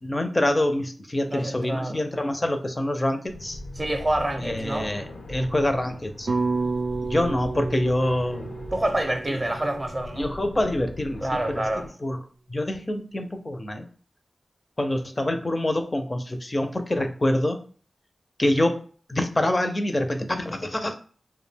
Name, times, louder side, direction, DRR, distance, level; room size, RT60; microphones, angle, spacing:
voice 1, 0.0-3.6 4.4-6.3 7.0-8.5 9.3-9.6 10.1-11.7 12.0-12.2 12.5-13.9 14.8-17.6 18.4-18.8 19.1-20.9, left 1 dB, 30° left, 0.4 m, -26 dB
voice 2, 1.3-2.0 3.8-4.9 5.3-5.6 8.7-10.3 11.2-11.9, right 1 dB, 30° right, 0.5 m, -27 dB
sound 1, 3.2-11.9, left 1 dB, 80° left, 0.5 m, -40 dB
sound 2, 6.3-10.5, right 3 dB, 80° right, 0.4 m, -31 dB
2.2 x 2.1 x 3.3 m
cardioid pair, 65°, 0 cm